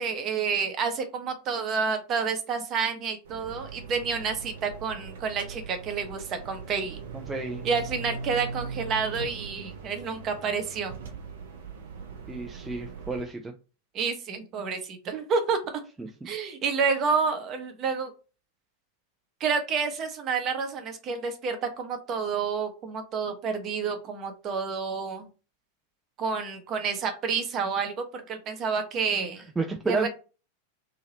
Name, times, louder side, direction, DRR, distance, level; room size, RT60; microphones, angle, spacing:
voice 1, 0.0-7.0 7.6-10.9 13.9-15.6 16.2-18.1 19.4-25.3 26.2-29.4 29.9-30.1, right 5 dB, 30° right, 0.8 m, -29 dB
sound 1, 3.2-13.2, right 5 dB, 60° right, 0.7 m, -40 dB
voice 2, 7.1-7.6 12.3-13.5 16.0-16.3 29.6-30.1, right 3 dB, 10° right, 0.4 m, -31 dB
2.9 x 2.8 x 2.9 m
figure-of-eight pair, 90°, 0 cm